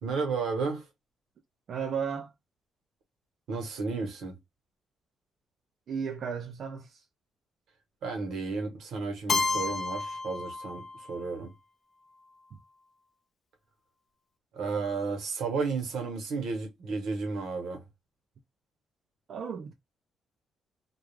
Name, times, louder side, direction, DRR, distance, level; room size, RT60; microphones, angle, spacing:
voice 1, 0.0-0.8 3.5-4.3 8.0-11.5 14.5-17.8, right 4 dB, 75° right, 1.0 m, -33 dB
voice 2, 1.7-2.3 5.9-7.0 19.3-19.7, right 6 dB, 50° right, 0.4 m, -34 dB
Keyboard (musical), 9.3-11.2, left 3 dB, 35° left, 0.4 m, -31 dB
2.3 x 2.2 x 3.1 m
cardioid pair, 155°, 0 cm